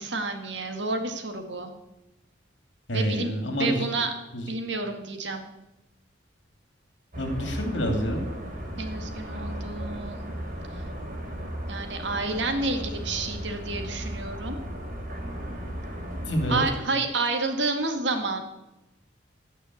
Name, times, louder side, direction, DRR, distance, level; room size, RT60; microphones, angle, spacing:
voice 1, 0.0-1.7 2.9-3.3 3.6-4.1 4.5-5.4 8.8-10.3 11.7-14.6 16.5-18.4, right 3 dB, 65° right, 5 dB, 2.0 m, -29 dB
voice 2, 2.9-3.9 4.3-4.4 7.2-8.2 16.3-16.6, equal, 65° left, 4 dB, 2.8 m, -27 dB
sound 1, 7.1-16.8, equal, 45° right, 3.7 m, -35 dB
17.0 x 6.2 x 8.4 m, 0.97 s
head